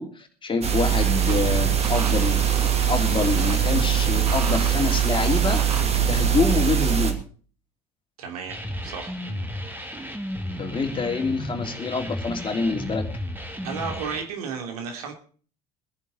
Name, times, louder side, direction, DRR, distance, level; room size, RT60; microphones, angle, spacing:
voice 1, 0.0-2.4 2.9-5.6 6.1-7.2 10.6-13.1, left 4 dB, 25° left, 4 dB, 3.1 m, -26 dB
sound 1, 0.6-7.1, right 9 dB, 30° right, 2.7 m, -22 dB
sound 2, 1.2-6.5, right 2 dB, 85° right, 1.3 m, -33 dB
voice 2, 8.2-9.2 13.6-15.1, right 6 dB, 70° right, 4 dB, 3.2 m, -33 dB
sound 3, 8.5-14.2, left 1 dB, 10° right, 3.1 m, -33 dB
21.5 x 10.5 x 4.2 m, 0.42 s
figure-of-eight pair, 60°, 20 cm